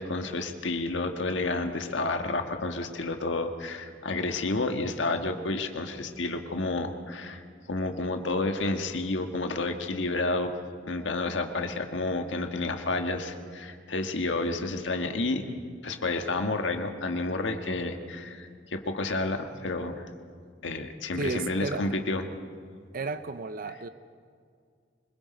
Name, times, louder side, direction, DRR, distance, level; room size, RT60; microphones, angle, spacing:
voice 1, 0.0-10.5 10.9-15.4 15.8-20.1 20.6-22.2, left 2 dB, 70° left, 5 dB, 1.5 m, -30 dB
voice 2, 21.1-21.9 22.9-23.9, right 3 dB, 50° right, 12 dB, 0.6 m, -33 dB
25.0 x 22.0 x 5.2 m, 2.2 s
head